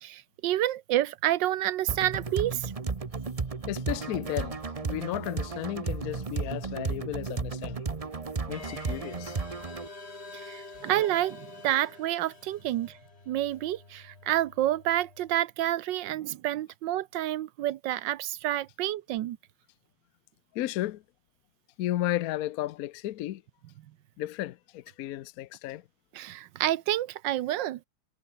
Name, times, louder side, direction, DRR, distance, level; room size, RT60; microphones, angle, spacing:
voice 1, 0.0-2.7 10.3-13.0 13.3-19.4 26.1-27.8, right 13 dB, 70° right, 1.3 m, -29 dB
sound 1, 1.9-9.9, right 4 dB, 35° right, 0.6 m, -34 dB
voice 2, 3.7-7.8 8.5-9.4 20.5-21.0 21.8-23.4 24.2-25.8, left 14 dB, 75° left, 0.8 m, -33 dB
sound 2, 8.5-15.4, left 3 dB, 30° left, 3.4 m, -48 dB
omnidirectional pair, 2.3 m